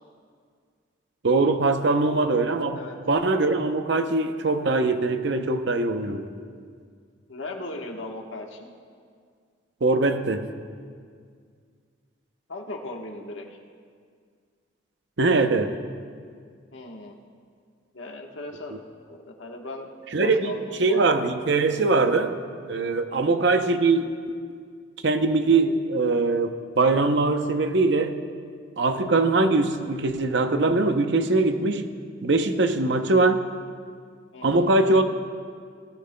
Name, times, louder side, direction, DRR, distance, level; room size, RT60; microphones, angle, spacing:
voice 1, 1.2-2.8 3.1-6.3 9.8-10.5 15.2-15.7 20.1-20.5 20.8-22.4 22.7-24.1 25.0-28.2 28.8-31.9 32.2-33.4 34.4-35.0, right 3 dB, 65° right, 7 dB, 0.7 m, -22 dB
voice 2, 7.3-8.7 12.5-13.6 16.7-17.2 17.9-18.8 19.1-19.9 20.2-21.1 23.1-23.4 34.3-34.7, left 2 dB, 80° left, 1 dB, 1.3 m, -38 dB
19.0 x 13.0 x 2.2 m, 2.1 s
head